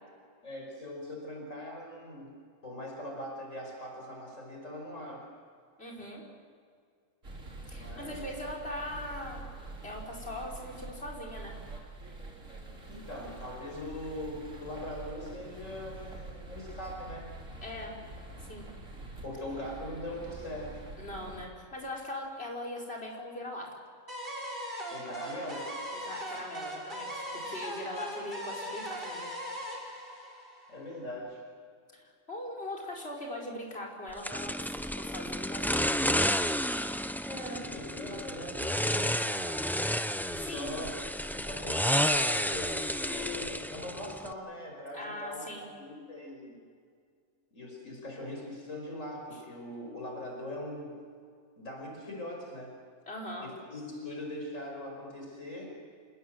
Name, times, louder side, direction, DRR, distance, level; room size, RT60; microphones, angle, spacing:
voice 1, 0.4-5.3 7.7-8.2 12.9-17.3 19.2-20.8 24.9-25.7 30.7-31.4 37.3-40.0 40.2-40.9 41.3-46.5 47.5-51.0 51.6-52.8 53.4-55.7, left 1 dB, 80° left, 1 dB, 5.9 m, -41 dB
voice 2, 5.8-6.3 7.7-9.4 9.8-11.6 17.6-18.0 18.5-18.7 21.0-23.8 25.9-29.3 32.0-36.3 40.4-40.7 44.9-45.7 53.1-53.5, left 1 dB, 50° left, 0 dB, 5.4 m, -40 dB
sound 1, 7.2-21.5, right 2 dB, 85° right, 3.8 m, -46 dB
sound 2, 24.1-31.0, equal, 45° right, 5.7 m, -39 dB
sound 3, 34.2-44.3, equal, ahead, 0.6 m, -31 dB
28.0 x 20.5 x 8.0 m, 2.1 s
omnidirectional pair, 1.3 m